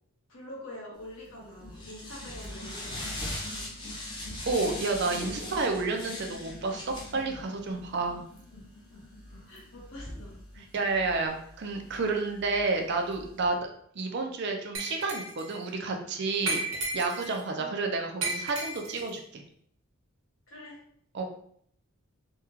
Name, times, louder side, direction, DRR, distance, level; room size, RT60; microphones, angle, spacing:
voice 1, 0.3-3.9 6.1-6.2 9.5-10.4 17.6-17.7 20.5-20.8, left 1 dB, 65° left, -3 dB, 1.1 m, -46 dB
sound 1, 1.1-13.5, left 1 dB, 20° left, 0.6 m, -42 dB
sound 2, 1.3-11.3, left 1 dB, 85° left, 0.5 m, -50 dB
voice 2, 4.5-8.2 10.6-13.7 13.9-19.4 21.1-21.2, right 3 dB, 50° right, 3 dB, 0.5 m, -30 dB
Glass, 14.7-15.5 16.5-17.4 18.2-19.1, right 2 dB, 75° right, 1.1 m, -33 dB
3.5 x 2.3 x 3.0 m, 0.66 s
head